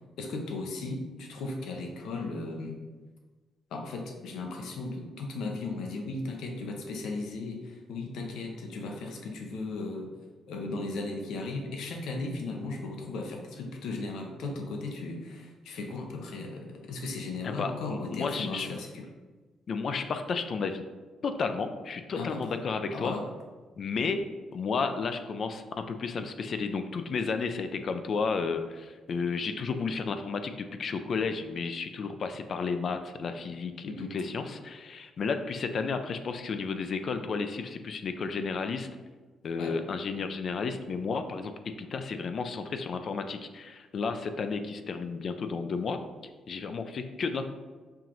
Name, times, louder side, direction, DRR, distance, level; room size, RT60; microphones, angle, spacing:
voice 1, 0.2-2.8 3.7-10.1 10.5-19.0 22.2-22.5 22.9-23.2 33.9-34.1 39.6-39.8, left 3 dB, 80° left, 2 dB, 0.7 m, -36 dB
voice 2, 17.4-18.7 19.7-20.8 21.2-23.2 23.8-24.2 24.5-38.9 39.4-41.5 41.8-46.0 46.5-47.5, left 5 dB, 50° left, 8 dB, 0.3 m, -32 dB
5.6 x 2.5 x 2.9 m, 1.3 s
cardioid pair, 90°, 0 cm